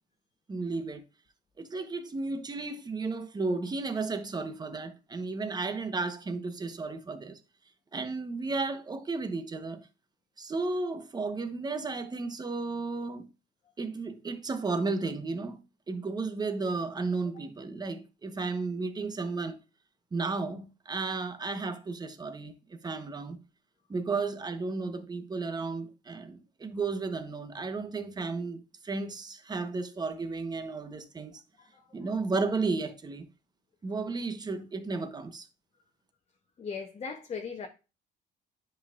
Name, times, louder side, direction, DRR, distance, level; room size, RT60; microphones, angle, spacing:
voice 1, 0.5-1.0 1.6-7.4 7.9-9.9 10.4-13.3 13.8-15.6 15.9-19.6 20.1-23.4 23.9-31.4 31.9-33.3 33.8-35.5, right 3 dB, 25° right, 1.1 m, -33 dB
voice 2, 36.6-37.7, left 5 dB, 35° left, 1.1 m, -38 dB
10.0 x 5.5 x 2.5 m
cardioid pair, 110°, 17 cm